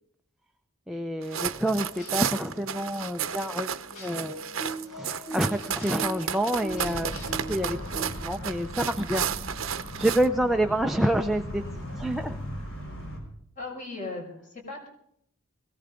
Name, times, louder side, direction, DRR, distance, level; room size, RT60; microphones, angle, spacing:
voice 1, 0.9-3.7 4.0-4.4 4.9-7.1 7.5-9.3 10.0-11.6 12.0-12.4, right 1 dB, ahead, 4 dB, 0.6 m, -28 dB
sound 1, 1.2-10.3, right 8 dB, 65° right, 0.8 m, -33 dB
sound 2, 1.9-8.1, right 1 dB, 85° left, 4.9 m, -41 dB
sound 3, 6.7-13.2, equal, 65° left, 5.8 m, -38 dB
voice 2, 13.6-14.9, left 3 dB, 35° left, 1 dB, 5.9 m, -37 dB
21.5 x 17.5 x 3.8 m, 0.68 s
head